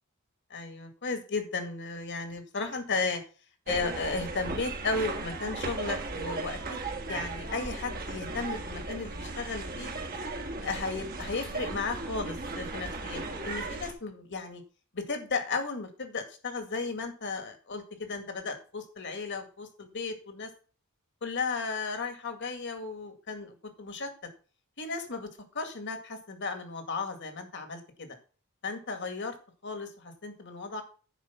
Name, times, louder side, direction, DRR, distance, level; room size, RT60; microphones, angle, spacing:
voice 1, 0.5-3.2 3.7-9.9 10.6-14.6 14.9-20.5 21.2-24.1 24.8-25.3 25.5-28.1 28.6-29.3 29.6-30.8, left 4 dB, 55° left, 6 dB, 2.2 m, -35 dB
sound 1, 3.7-13.9, right 3 dB, 40° right, 1.6 m, -36 dB
10.5 x 5.0 x 7.1 m, 0.38 s
head